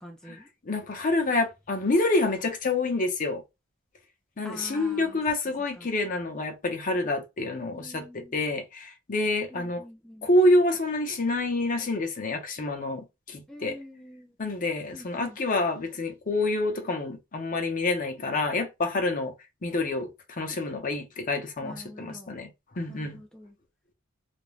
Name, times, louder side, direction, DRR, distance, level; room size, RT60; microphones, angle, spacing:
voice 1, 0.0-0.5 4.4-5.2 5.8-5.9 7.6-8.4 9.5-10.3 13.5-14.4 14.9-15.4 21.6-22.4 22.9-23.6, equal, 5° left, 0.4 m, -45 dB
voice 2, 0.6-3.4 4.4-9.8 10.2-13.8 14.4-19.3 19.6-23.2, left 2 dB, 40° left, 0.7 m, -27 dB
2.5 x 2.1 x 3.1 m
head